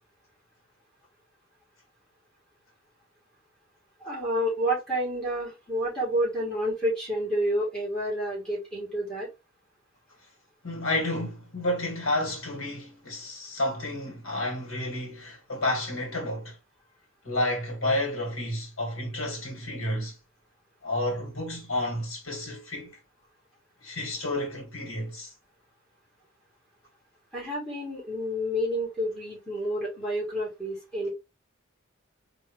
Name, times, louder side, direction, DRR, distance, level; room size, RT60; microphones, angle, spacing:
voice 1, 4.0-9.3 27.3-31.1, equal, 5° left, 2.8 m, -29 dB
voice 2, 10.6-16.6 17.2-20.1 20.8-23.0 23.8-25.3, left 1 dB, 80° left, 2.2 m, -30 dB
4.0 x 3.4 x 3.3 m
head